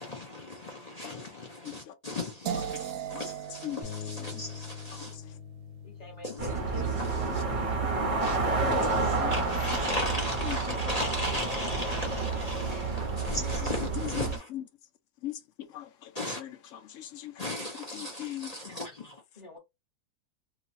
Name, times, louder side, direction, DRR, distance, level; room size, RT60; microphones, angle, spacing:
voice 1, 0.0-5.2 6.2-7.4 8.2-14.5 16.1-16.4 17.4-19.2, left 1 dB, 45° left, 0.5 m, -37 dB
voice 2, 1.6-1.9 2.8-3.2 3.5-4.4 4.9-5.4 7.8-9.4 10.4-10.8 13.6-13.7 14.0-14.6 15.2-17.4 17.7-18.6, left 13 dB, 65° left, 0.9 m, -41 dB
sound 1, 2.5-8.4, right 8 dB, 70° right, 0.8 m, -41 dB
Bass guitar, 3.8-10.1, left 9 dB, 85° left, 1.2 m, -46 dB
voice 3, 5.8-7.8 12.0-12.1 19.4-19.6, left 2 dB, 30° left, 1.2 m, -47 dB
sound 2, 6.4-14.4, right 3 dB, 45° right, 0.4 m, -30 dB
3.0 x 2.4 x 2.5 m
omnidirectional pair, 1.6 m